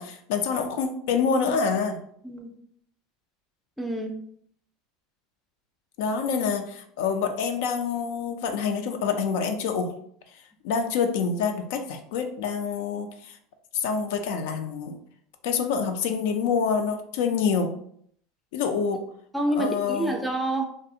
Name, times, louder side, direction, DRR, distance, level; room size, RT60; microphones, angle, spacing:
voice 1, 0.0-2.0 6.0-9.9 10.6-13.4 13.7-15.0 15.4-17.7 18.5-19.0 19.6-20.2, left 6 dB, 70° left, 6 dB, 0.4 m, -26 dB
voice 2, 2.2-2.5 3.8-4.2 19.3-20.7, right 1 dB, 5° right, 3 dB, 0.4 m, -27 dB
2.5 x 2.3 x 2.7 m, 0.65 s
supercardioid pair, 125°, 0 cm